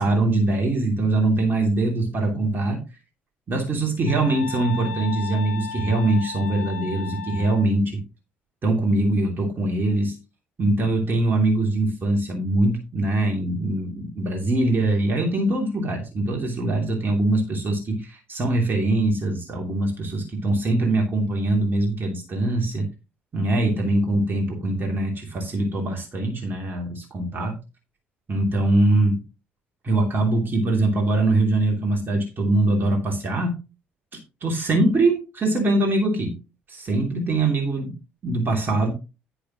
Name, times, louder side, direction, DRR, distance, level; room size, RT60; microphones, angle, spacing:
voice 1, 0.0-2.8 3.5-8.0 8.6-10.1 10.6-22.9 23.3-27.6 28.3-29.2 29.8-33.6 34.4-36.3 36.7-38.0 38.2-38.9, right 2 dB, 35° right, 1 dB, 2.9 m, -22 dB
sound 1, 4.1-7.7, left 6 dB, 75° left, 1.5 m, -35 dB
10.0 x 9.5 x 3.0 m, 0.28 s
figure-of-eight pair, 50°, 6 cm